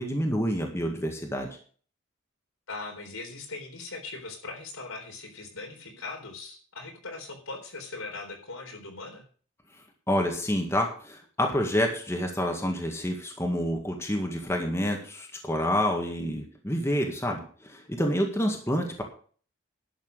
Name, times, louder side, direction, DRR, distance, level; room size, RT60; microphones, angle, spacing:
voice 1, 0.0-1.5 10.1-19.0, equal, 10° left, 2 dB, 1.8 m, -28 dB
voice 2, 2.7-9.2, left 3 dB, 80° left, 2 dB, 4.0 m, -40 dB
11.5 x 7.2 x 6.8 m, 0.43 s
head